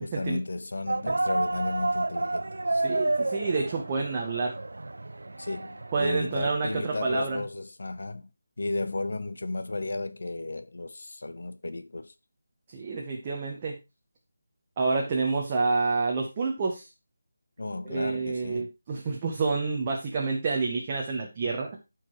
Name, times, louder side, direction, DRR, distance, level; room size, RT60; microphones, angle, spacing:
voice 1, 0.0-2.8 5.4-8.3 8.6-12.1 17.6-18.7, left 2 dB, 55° left, 0.7 m, -34 dB
sound 1, 0.9-6.7, right 2 dB, 90° right, 0.4 m, -30 dB
voice 2, 2.8-4.5 5.9-7.4 12.7-13.8 14.8-16.9 17.9-21.8, right 4 dB, 15° right, 0.8 m, -28 dB
13.5 x 4.7 x 3.1 m
figure-of-eight pair, 180°, 0 cm